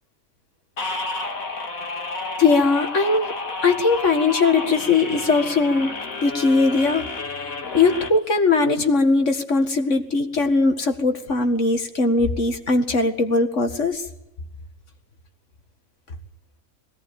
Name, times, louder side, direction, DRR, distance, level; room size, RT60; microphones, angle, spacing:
sound 1, 0.8-8.1, left 3 dB, 85° left, 2.6 m, -31 dB
voice 1, 2.4-3.3 3.6-5.9 6.2-7.1 7.7-14.0, left 3 dB, 60° left, 6 dB, 2.3 m, -20 dB
21.0 x 17.5 x 9.0 m, 0.86 s
omnidirectional pair, 1.4 m